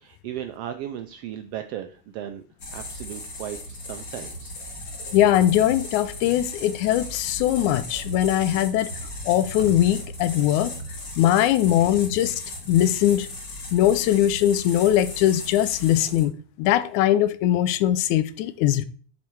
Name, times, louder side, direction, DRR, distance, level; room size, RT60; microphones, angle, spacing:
voice 1, 0.0-2.4 2.7-4.6, right 11 dB, 85° right, 1.4 m, -36 dB
sound 1, 2.6-16.2, left 1 dB, 35° left, 1.7 m, -37 dB
voice 2, 5.1-8.9 9.3-10.7 11.2-12.4 12.7-13.3 13.7-18.9, left 12 dB, 90° left, 2.1 m, -21 dB
Computer keyboard, 7.7-13.3, right 2 dB, 45° right, 2.6 m, -42 dB
7.4 x 6.4 x 4.6 m
omnidirectional pair, 3.3 m